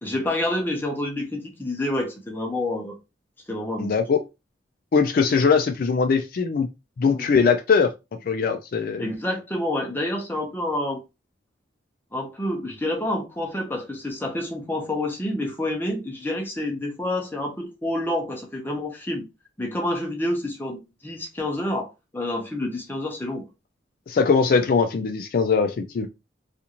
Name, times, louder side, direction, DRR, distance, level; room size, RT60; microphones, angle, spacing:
voice 1, 0.0-3.0 3.5-3.9 7.0-7.3 9.0-11.0 12.1-19.2 19.6-23.4, left 1 dB, 10° left, 0.7 m, -28 dB
voice 2, 3.8-4.2 4.9-6.7 7.0-7.9 8.3-9.0 24.1-26.1, left 5 dB, 50° left, 0.3 m, -21 dB
2.5 x 2.5 x 2.9 m
head